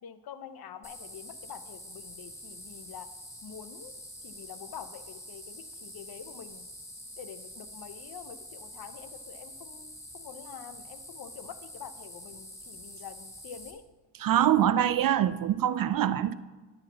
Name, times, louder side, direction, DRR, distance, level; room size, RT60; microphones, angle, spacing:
voice 1, 0.0-3.1 3.4-3.9 4.2-6.7 7.2-13.8, left 8 dB, 50° left, 0.8 m, -46 dB
sound 1, 0.8-13.7, left 1 dB, 5° left, 2.2 m, -46 dB
voice 2, 14.2-16.3, right 11 dB, 45° right, 0.5 m, -24 dB
10.5 x 4.1 x 6.8 m
supercardioid pair, 60°, 48 cm